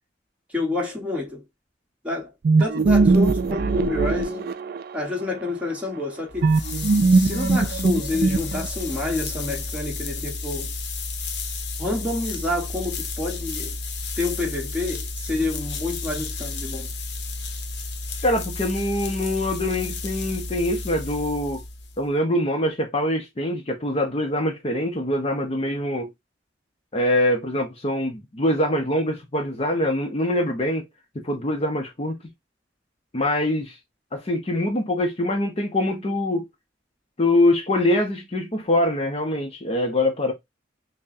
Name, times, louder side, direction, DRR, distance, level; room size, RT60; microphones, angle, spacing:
voice 1, 0.5-1.5 2.0-2.3 2.6-4.5 4.9-6.5 7.1-10.7 11.8-13.8 14.2-16.9, left 2 dB, 5° right, 1.3 m, -28 dB
sound 1, 2.4-5.0 6.4-8.9, right 3 dB, 55° right, 0.4 m, -20 dB
sound 2, 6.3-22.1, left 3 dB, 65° left, 0.8 m, -32 dB
voice 2, 18.2-21.6 22.0-26.1 26.9-30.8 31.1-32.1 33.1-33.8 34.1-36.5 37.2-40.3, left 1 dB, 35° left, 0.6 m, -24 dB
5.6 x 2.1 x 2.6 m
head